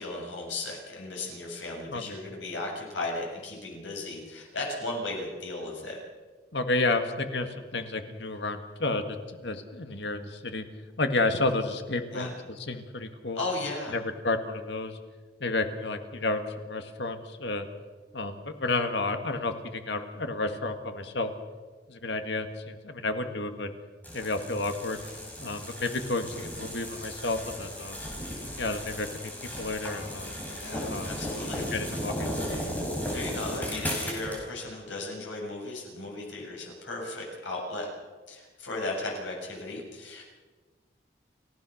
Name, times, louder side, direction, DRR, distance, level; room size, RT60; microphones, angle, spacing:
voice 1, 0.0-6.0 12.1-12.3 13.3-14.0 30.6-31.7 33.1-37.9 38.3-40.2, left 2 dB, 90° left, -1 dB, 7.6 m, -36 dB
voice 2, 6.5-10.6 11.0-12.3 12.6-13.4 13.9-15.0 15.4-17.7 18.1-21.3 21.9-23.7 24.1-25.0 25.4-28.0 28.6-29.3 29.6-30.3 30.9-31.1 31.5-32.6, left 2 dB, 70° left, 7 dB, 1.9 m, -31 dB
sound 1, 24.0-34.4, equal, 10° left, 4.7 m, -35 dB
29.5 x 16.5 x 6.5 m, 1.4 s
head